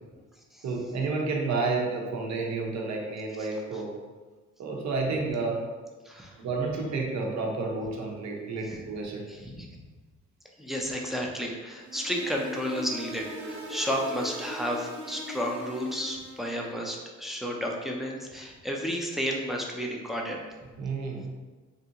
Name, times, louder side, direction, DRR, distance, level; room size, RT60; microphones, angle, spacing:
voice 1, 0.6-3.9 4.6-5.6 6.4-9.2 20.8-21.2, right 3 dB, 65° right, -1 dB, 0.7 m, -30 dB
voice 2, 6.1-6.4 8.7-8.8 9.3-9.7 10.6-20.4, equal, ahead, -1 dB, 0.5 m, -32 dB
sound 1, 11.8-16.6, right 1 dB, 35° right, 0.9 m, -40 dB
3.5 x 2.6 x 2.8 m, 1.3 s
cardioid pair, 90°, 30 cm